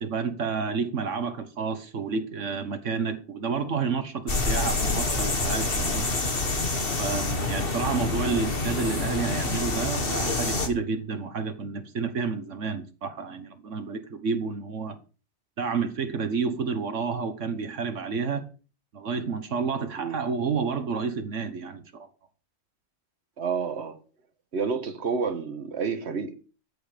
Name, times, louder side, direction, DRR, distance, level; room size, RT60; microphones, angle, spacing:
voice 1, 0.0-6.1 6.9-15.0 15.6-18.4 18.9-22.1, right 5 dB, 85° right, 1.6 m, -30 dB
sound 1, 4.3-10.7, left 3 dB, 50° left, 2.2 m, -27 dB
voice 2, 23.4-24.0 24.5-26.4, right 5 dB, 65° right, 1.7 m, -29 dB
14.0 x 8.7 x 5.1 m
omnidirectional pair, 1.2 m